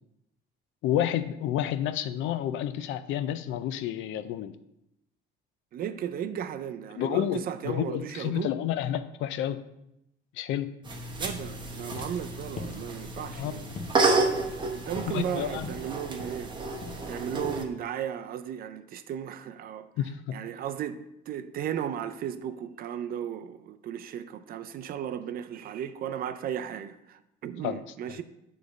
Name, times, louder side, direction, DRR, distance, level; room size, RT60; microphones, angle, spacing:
voice 1, 0.8-4.5 7.0-9.6 10.3-10.7 13.4-13.7 15.1-15.7 20.0-20.4 27.6-27.8 28.1-28.2, left 11 dB, 75° left, 0.5 m, -30 dB
voice 2, 5.7-8.5 11.2-13.7 14.7-16.5 17.1-19.9 20.3-28.2, right 9 dB, 50° right, 0.4 m, -35 dB
sound 1, 10.8-17.6, right 3 dB, 25° right, 0.8 m, -31 dB
sound 2, 11.9-17.7, left 3 dB, 35° left, 0.8 m, -43 dB
8.5 x 3.3 x 5.1 m
cardioid pair, 155°, 20 cm